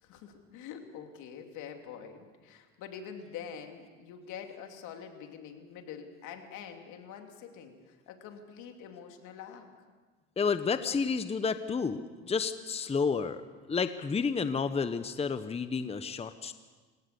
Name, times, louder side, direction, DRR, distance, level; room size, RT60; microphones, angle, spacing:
voice 1, 0.0-9.7, left 7 dB, 70° left, 4 dB, 3.0 m, -45 dB
voice 2, 10.4-13.4 13.7-16.5, left 5 dB, 20° left, 11 dB, 0.9 m, -30 dB
27.5 x 17.5 x 6.9 m, 1.4 s
supercardioid pair, 100°, 31 cm